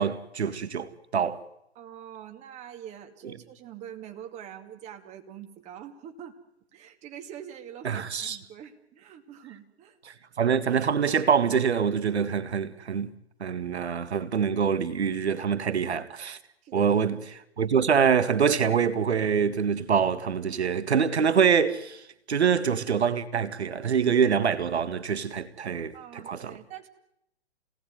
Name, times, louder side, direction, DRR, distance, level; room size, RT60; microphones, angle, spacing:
voice 1, 0.0-1.4 3.2-3.3 7.8-8.4 10.0-13.1 13.4-16.4 16.7-17.2 17.6-22.0 22.3-26.6, right 7 dB, 70° right, 2.0 m, -25 dB
voice 2, 1.7-6.4 6.7-10.0 16.6-16.9 25.9-26.9, right 9 dB, 20° right, 2.4 m, -44 dB
29.0 x 19.0 x 9.4 m
hypercardioid pair, 135°, 34 cm